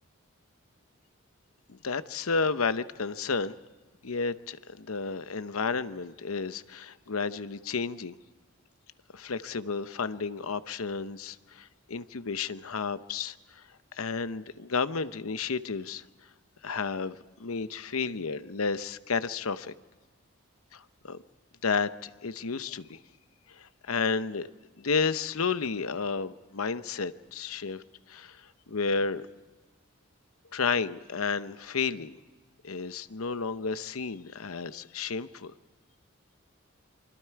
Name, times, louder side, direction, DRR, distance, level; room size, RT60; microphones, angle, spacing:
voice 1, 1.7-3.5 4.0-8.1 9.1-13.6 14.0-16.0 16.6-19.7 20.7-21.2 21.6-23.0 23.5-24.5 24.8-27.8 28.1-28.4 28.7-29.3 30.5-32.2 32.6-35.5, left 5 dB, 90° left, 13 dB, 0.9 m, -32 dB
27.0 x 25.0 x 4.7 m, 1.3 s
head